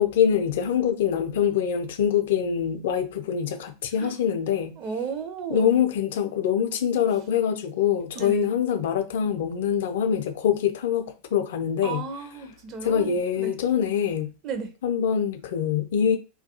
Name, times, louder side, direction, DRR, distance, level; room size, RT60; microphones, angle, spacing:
voice 1, 0.0-4.8 5.5-12.1 12.8-14.3 14.8-16.2, left 8 dB, 55° left, 0.4 m, -24 dB
voice 2, 4.8-5.9 8.1-8.5 11.8-13.6 14.4-14.7, right 6 dB, 35° right, 0.5 m, -34 dB
2.3 x 2.2 x 2.7 m
figure-of-eight pair, 90°, 0 cm